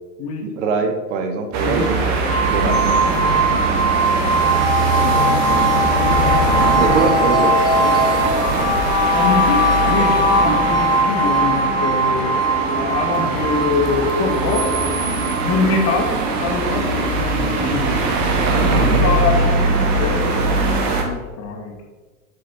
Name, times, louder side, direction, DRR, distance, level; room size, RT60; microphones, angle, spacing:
voice 1, 0.4-2.2 2.5-2.8 6.1-6.4 6.8-8.0 10.4-10.7 18.6-19.1, right 4 dB, 55° right, 6 dB, 1.2 m, -23 dB
sound 1, 1.5-21.0, right 3 dB, 40° right, 1.7 m, -21 dB
sound 2, 2.3-17.2, right 1 dB, 10° left, 1.0 m, -20 dB
voice 2, 5.5-6.2 9.1-14.7 15.4-18.0 18.6-21.8, left 4 dB, 35° left, 1 dB, 1.9 m, -24 dB
7.5 x 6.8 x 4.3 m, 1.4 s
figure-of-eight pair, 95°, 45 cm